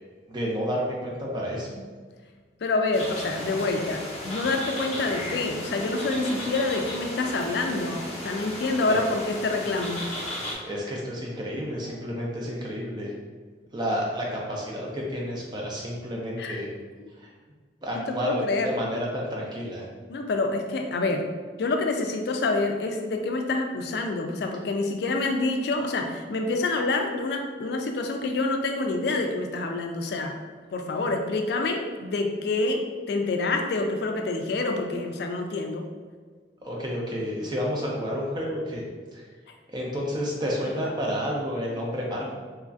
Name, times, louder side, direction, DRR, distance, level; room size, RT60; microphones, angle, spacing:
voice 1, 0.3-1.8 8.9-9.0 10.6-13.1 13.7-16.7 17.2-17.3 17.8-19.8 36.6-38.9 39.1-39.2 39.7-42.3, equal, 25° right, -2 dB, 0.4 m, -30 dB
voice 2, 2.6-10.0 16.4-16.6 17.9-18.8 20.1-21.3 21.6-30.3 30.7-35.8 40.8-40.9, left 3 dB, 60° left, 4 dB, 0.3 m, -27 dB
sound 1, 2.9-10.5, left 1 dB, 35° left, 0.6 m, -35 dB
3.0 x 2.4 x 2.4 m, 1.5 s
head